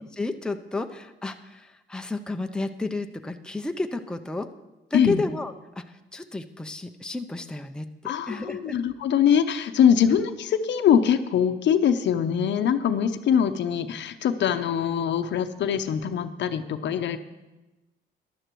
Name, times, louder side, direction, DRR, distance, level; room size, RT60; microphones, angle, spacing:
voice 1, 0.1-4.5 4.9-8.8 10.1-10.2, left 2 dB, 5° left, 6 dB, 0.5 m, -32 dB
voice 2, 8.0-17.2, left 8 dB, 65° left, 9 dB, 0.7 m, -23 dB
14.5 x 11.0 x 3.1 m, 1.1 s
cardioid pair, 90°, 20 cm